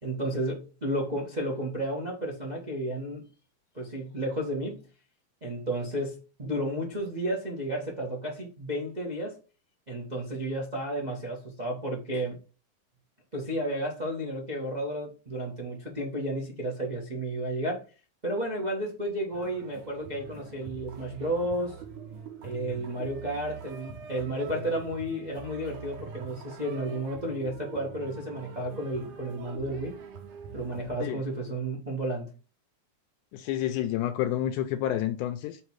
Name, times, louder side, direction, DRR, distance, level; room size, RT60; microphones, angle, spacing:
voice 1, 0.0-3.3 3.7-4.8 5.4-9.4 9.9-12.4 13.3-17.8 18.2-21.7 22.4-29.9 30.5-32.4, right 1 dB, 60° right, 0.4 m, -32 dB
sound 1, 19.3-31.0, right 6 dB, 90° right, 2.4 m, -44 dB
voice 2, 33.3-35.6, left 12 dB, 90° left, 2.1 m, -29 dB
6.4 x 3.2 x 4.6 m
omnidirectional pair, 3.5 m